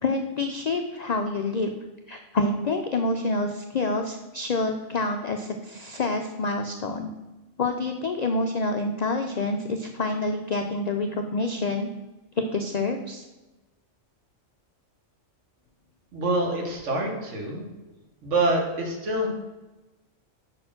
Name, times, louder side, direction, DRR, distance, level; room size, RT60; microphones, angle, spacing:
voice 1, 0.0-1.7 2.1-7.1 7.6-11.9 12.5-13.2, left 3 dB, 65° left, 4 dB, 0.4 m, -27 dB
voice 2, 16.1-17.7 18.2-19.3, right 2 dB, 70° right, 0 dB, 1.6 m, -26 dB
5.7 x 4.3 x 5.9 m, 1.1 s
omnidirectional pair, 1.3 m